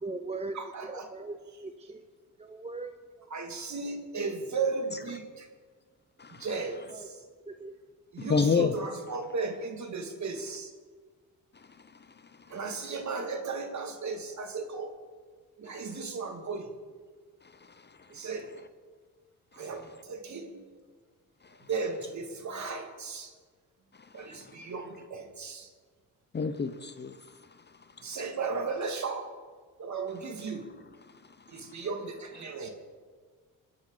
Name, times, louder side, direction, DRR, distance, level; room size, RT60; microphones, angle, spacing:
voice 1, 0.0-2.0 2.4-3.3 6.9-7.1 7.5-7.7, right 3 dB, 15° right, 7 dB, 0.7 m, -40 dB
voice 2, 0.5-1.1 3.3-5.5 6.3-7.2 8.1-10.7 12.5-14.9 15.6-16.7 18.1-18.5 19.5-20.7 21.7-23.3 24.1-25.7 28.0-29.3 29.8-30.7 31.5-32.7, right 4 dB, 50° right, 4 dB, 2.2 m, -35 dB
voice 3, 8.2-8.8 11.5-12.5 15.7-16.0 17.4-18.1 21.4-21.6 23.9-24.6 26.3-27.6 28.0-28.1 31.5-31.8 32.4-32.6, left 5 dB, 30° left, 11 dB, 0.7 m, -32 dB
22.5 x 8.9 x 3.9 m, 1.5 s
supercardioid pair, 65°, 37 cm